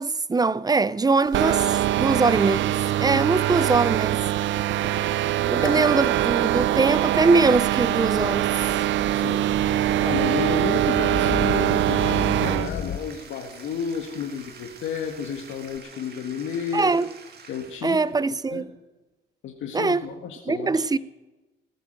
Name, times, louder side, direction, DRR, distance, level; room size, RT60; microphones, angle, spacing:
voice 1, 0.0-4.2 5.4-8.5 16.7-17.1 17.8-18.7 19.7-20.0 20.5-21.0, right 3 dB, 20° right, 0.5 m, -22 dB
sound 1, 1.3-12.7, right 13 dB, 70° right, 0.5 m, -23 dB
sound 2, 3.4-13.0, left 7 dB, 50° left, 1.0 m, -37 dB
voice 2, 4.7-5.1 5.6-6.0 9.1-9.5 10.0-17.0 17.5-18.0 18.5-18.6 19.4-20.8, left 7 dB, 75° left, 1.4 m, -32 dB
Bathtub (filling or washing), 8.2-18.2, right 5 dB, 55° right, 2.1 m, -48 dB
19.0 x 9.4 x 6.4 m
cardioid pair, 90°, 20 cm